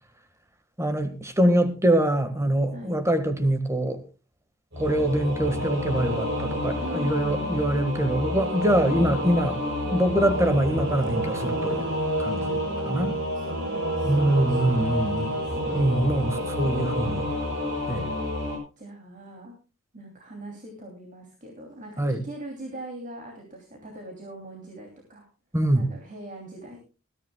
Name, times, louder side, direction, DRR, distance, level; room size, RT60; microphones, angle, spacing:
voice 1, 0.8-4.0 4.8-9.6 9.9-12.4 12.9-13.1 14.0-15.3 15.7-17.3 17.9-18.1 22.0-22.2 25.5-25.9, right 1 dB, 15° right, 1.6 m, -24 dB
voice 2, 2.7-3.0 6.8-7.5 8.8-9.1 12.4-15.9 16.4-16.5 18.8-19.5 19.9-25.2 25.7-26.8, right 1 dB, 35° right, 2.9 m, -41 dB
Singing / Musical instrument, 4.7-18.6, equal, 60° right, 5.9 m, -29 dB
20.5 x 14.0 x 2.3 m
head